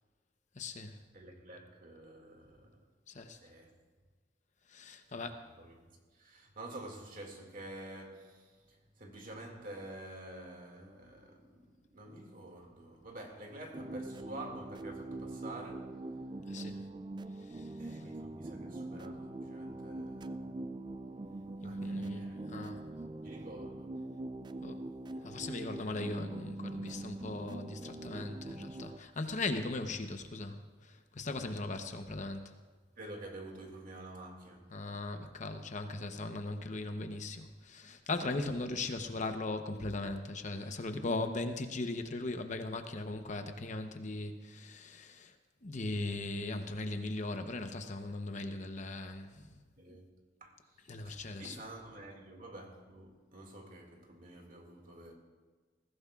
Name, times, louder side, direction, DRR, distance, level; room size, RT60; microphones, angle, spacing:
voice 1, 0.5-1.0 3.1-3.4 4.7-5.5 16.5-16.9 17.4-18.0 21.6-22.9 24.6-24.8 25.2-32.5 34.7-45.3 45.6-49.6 50.9-51.6, left 2 dB, 45° left, 0.8 m, -39 dB
voice 2, 1.1-2.8 3.3-3.8 5.1-16.0 17.8-20.6 21.6-22.4 23.0-23.9 33.0-34.9 49.8-50.1 50.4-55.1, right 1 dB, 50° right, 2.2 m, -49 dB
sound 1, 13.7-29.0, right 2 dB, 25° right, 0.4 m, -42 dB
20.0 x 15.5 x 2.4 m
head